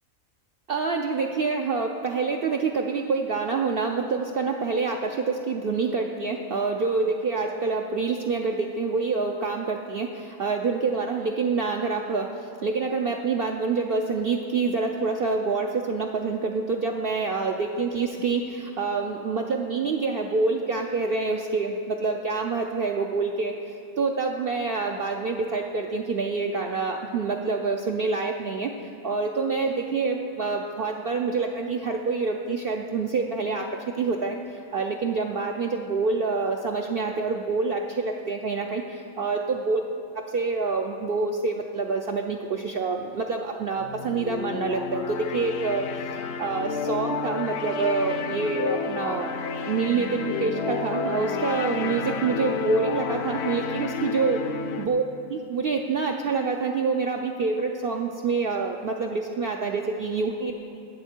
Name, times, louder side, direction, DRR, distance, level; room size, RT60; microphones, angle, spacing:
voice 1, 0.7-23.5 24.0-39.8 40.3-45.9 46.1-49.3 49.7-54.4 54.8-55.0 55.3-60.5, right 4 dB, 55° right, 2 dB, 0.7 m, -27 dB
sound 1, 43.8-54.9, left 5 dB, 60° left, 0.8 m, -30 dB
19.5 x 7.2 x 4.5 m, 2.7 s
omnidirectional pair, 1.4 m